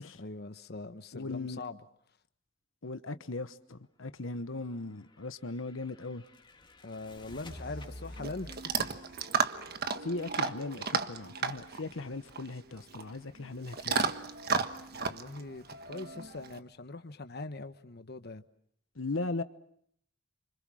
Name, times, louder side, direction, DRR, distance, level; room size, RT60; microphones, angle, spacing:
voice 1, 0.1-1.8 6.8-8.9 14.9-18.4, left 2 dB, 55° left, 1.2 m, -42 dB
voice 2, 1.1-1.6 2.8-6.2 10.0-14.0 19.0-19.4, left 3 dB, 80° left, 1.1 m, -38 dB
sound 1, 4.9-10.6, left 1 dB, 25° left, 2.6 m, -50 dB
Chewing mastication / Dog, 7.5-16.6, right 5 dB, 55° right, 1.4 m, -34 dB
29.0 x 26.5 x 6.4 m
head